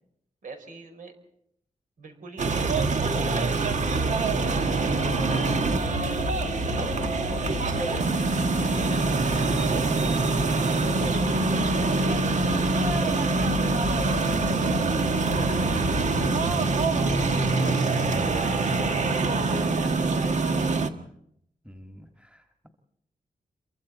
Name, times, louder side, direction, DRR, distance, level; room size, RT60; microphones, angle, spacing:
voice 1, 0.4-1.1 2.0-6.0 6.8-9.1 9.8-11.1 11.4-14.0 14.4-16.2 17.1-18.6 19.0-20.7, right 3 dB, 70° right, 4 dB, 5.3 m, -42 dB
sound 1, 2.4-20.9, right 3 dB, 55° right, 1.6 m, -25 dB
sound 2, 4.4-17.8, left 7 dB, 80° left, 0.8 m, -35 dB
voice 2, 21.6-22.7, equal, 10° right, 4 dB, 2.1 m, -45 dB
28.5 x 23.5 x 4.3 m, 0.71 s
wide cardioid pair, 125°, 14 cm